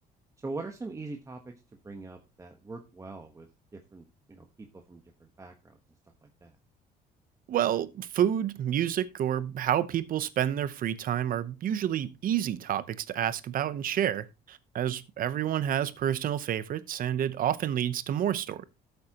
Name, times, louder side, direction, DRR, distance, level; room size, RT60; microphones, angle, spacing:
voice 1, 0.4-1.5 1.8-5.8 6.2-6.6, right 3 dB, 20° right, 1.3 m, -42 dB
voice 2, 7.5-18.6, right 10 dB, 55° right, 0.9 m, -29 dB
13.0 x 8.2 x 3.0 m
cardioid pair, 110°, 17 cm